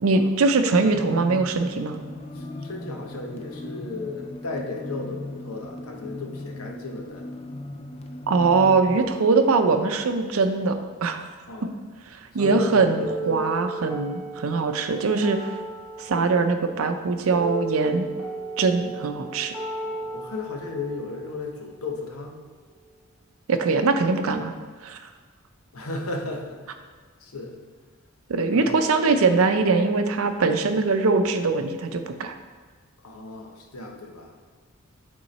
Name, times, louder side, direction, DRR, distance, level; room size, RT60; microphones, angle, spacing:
voice 1, 0.0-2.0 8.3-11.2 12.3-15.6 16.0-18.1 18.6-19.5 23.5-24.5 24.8-25.1 28.3-32.4, right 4 dB, 75° right, 7 dB, 0.5 m, -22 dB
sound 1, 0.8-9.0, left 1 dB, 30° left, 0.4 m, -38 dB
voice 2, 2.3-7.3 11.5-11.7 12.4-13.5 18.8-19.1 19.8-22.4 25.7-26.8 27.2-27.6 28.5-29.1 33.0-34.3, left 3 dB, 90° left, 2 dB, 0.9 m, -35 dB
sound 2, 13.0-23.0, right 2 dB, 5° right, 1.7 m, -36 dB
7.8 x 3.7 x 4.1 m, 1.5 s
head